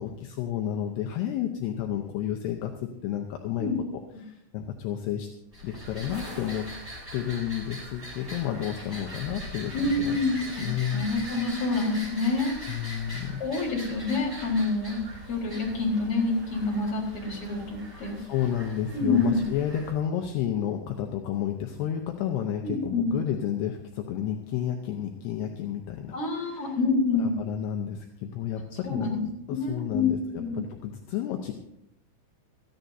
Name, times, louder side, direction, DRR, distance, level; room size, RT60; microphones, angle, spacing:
voice 1, 0.0-3.7 4.2-5.3 5.6-6.7 7.1-10.2 10.6-11.1 12.7-13.4 17.3-17.4 18.1-26.8 27.2-29.2 29.5-31.5, left 10 dB, 75° left, 3 dB, 2.5 m, -31 dB
sound 1, 5.5-19.9, equal, 5° right, 5.0 m, -41 dB
voice 2, 9.7-10.6 10.9-12.5 13.4-15.0 15.3-18.1 18.9-19.4 22.6-23.1 26.1-27.3 28.8-29.2 29.5-30.1 30.4-30.6, left 3 dB, 30° left, -3 dB, 4.0 m, -27 dB
19.5 x 14.5 x 2.7 m, 0.79 s
omnidirectional pair, 5.7 m